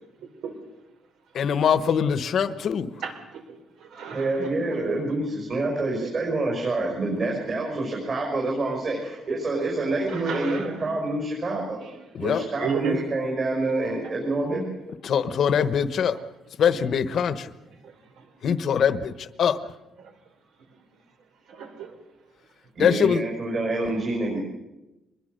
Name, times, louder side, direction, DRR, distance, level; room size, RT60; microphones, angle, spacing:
voice 1, 1.3-2.9 12.1-12.4 15.0-16.2 16.6-17.5 18.4-19.6 22.8-23.2, left 7 dB, 50° left, 13 dB, 1.1 m, -23 dB
voice 2, 3.0-4.9 6.0-6.3 10.1-10.9 11.8-11.9 12.6-13.0 14.0-14.1 17.8-18.3 20.0-20.1 21.5-22.0, right 6 dB, 70° right, 6 dB, 4.0 m, -34 dB
voice 3, 4.1-11.8 12.2-14.6 22.7-24.4, right 2 dB, 35° right, -1 dB, 5.7 m, -27 dB
24.0 x 21.0 x 6.7 m, 1.0 s
cardioid pair, 165°, 0 cm